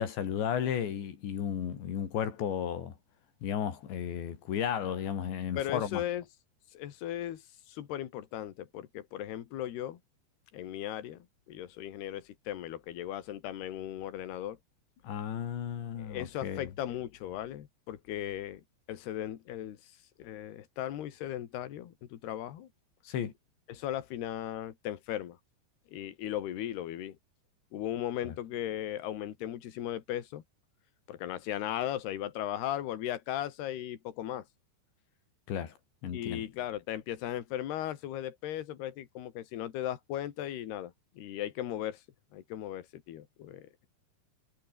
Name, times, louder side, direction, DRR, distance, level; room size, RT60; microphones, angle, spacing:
voice 1, 0.0-2.9 3.4-6.0 15.0-16.7 23.1-23.3 28.2-28.3 35.5-35.8 36.0-36.4, left 8 dB, 90° left, 5.5 m, -34 dB
voice 2, 5.6-6.2 6.7-10.0 10.5-14.6 16.0-18.6 18.9-19.9 20.2-22.7 23.7-25.4 25.9-27.2 27.7-30.4 31.1-34.5 36.1-42.0 42.3-43.7, left 12 dB, 70° left, 4.0 m, -37 dB
omnidirectional pair, 5.0 m